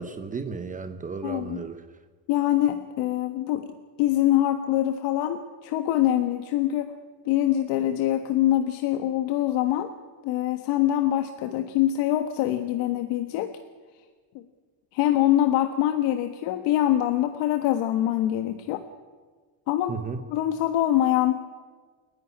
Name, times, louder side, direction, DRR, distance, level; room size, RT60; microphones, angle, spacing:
voice 1, 0.0-1.8 19.9-20.2, right 5 dB, 20° right, 8 dB, 1.0 m, -34 dB
voice 2, 1.2-1.6 2.3-6.9 7.2-9.9 10.2-13.5 14.3-14.4 14.9-18.8 19.7-20.0 20.3-21.4, left 13 dB, 80° left, 7 dB, 1.5 m, -24 dB
29.0 x 11.5 x 9.9 m, 1.4 s
cardioid pair, 165°, 42 cm